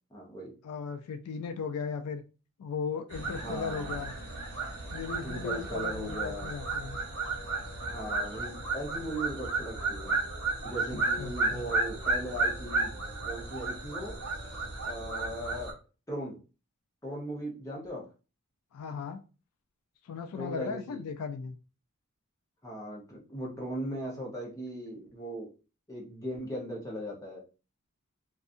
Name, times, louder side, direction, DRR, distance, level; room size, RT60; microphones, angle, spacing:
voice 1, 0.1-0.5 3.3-4.0 5.2-6.5 7.8-10.2 10.6-12.9 13.2-14.2 14.4-15.7 16.1-16.4 17.0-18.1 20.3-21.0 22.6-25.5 25.9-27.4, right 1 dB, 15° left, -2 dB, 0.8 m, -38 dB
voice 2, 0.6-2.2 2.6-4.1 4.9-7.0 10.9-11.7 18.7-19.2 20.0-21.6, left 5 dB, 80° left, 9 dB, 0.3 m, -37 dB
sound 1, 3.1-15.7, right 3 dB, 70° right, 1.0 m, -33 dB
2.6 x 2.3 x 2.4 m, 0.33 s
head